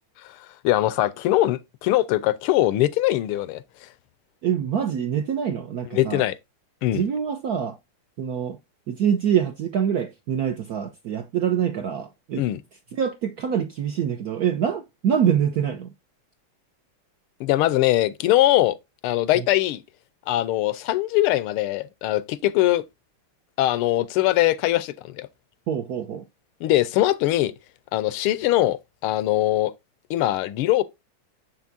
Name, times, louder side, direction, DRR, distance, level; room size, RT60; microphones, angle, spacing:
voice 1, 0.6-3.6 5.9-6.4 6.8-7.0 12.4-12.6 17.4-18.7 19.0-19.8 20.3-22.8 23.6-25.3 26.6-27.5 27.9-28.8 29.0-29.7 30.1-30.8, left 15 dB, 85° left, 1.5 m, -21 dB
voice 2, 4.4-6.2 6.9-7.7 8.2-8.6 8.9-12.4 13.0-15.9 25.7-26.2, right 8 dB, 70° right, 0.9 m, -25 dB
6.9 x 6.0 x 2.6 m
omnidirectional pair, 2.4 m